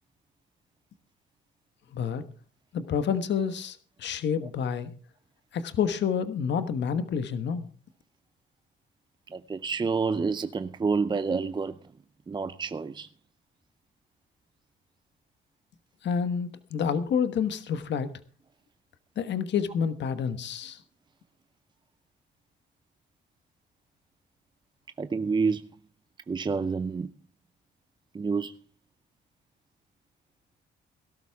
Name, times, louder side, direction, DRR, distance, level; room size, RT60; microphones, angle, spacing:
voice 1, 1.9-2.2 2.7-4.9 5.5-7.7 16.0-18.1 19.2-20.8, left 7 dB, 65° left, 1.3 m, -28 dB
voice 2, 9.3-11.9 12.3-13.1 25.0-25.7 26.3-27.1 28.1-28.5, right 4 dB, 25° right, 0.6 m, -28 dB
17.5 x 12.0 x 3.5 m
cardioid pair, 90°, 20 cm